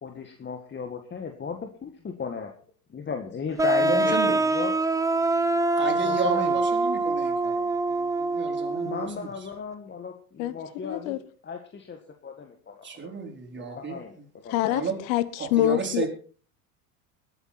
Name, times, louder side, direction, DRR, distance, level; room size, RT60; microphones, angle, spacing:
voice 1, 0.0-2.5 2.9-4.7 6.0-6.6 8.8-12.9 13.6-14.2 14.4-14.9, left 5 dB, 25° left, 5 dB, 1.8 m, -36 dB
sound 1, 3.6-9.1, right 2 dB, 5° right, 0.8 m, -24 dB
voice 2, 3.8-4.3 5.6-9.3 12.8-14.3 14.7-15.0 15.4-16.1, right 5 dB, 25° right, 2 dB, 4.4 m, -33 dB
voice 3, 10.8-11.2 14.5-16.1, left 14 dB, 60° left, 15 dB, 1.4 m, -25 dB
21.0 x 8.9 x 4.3 m, 0.40 s
hypercardioid pair, 85°, 45 cm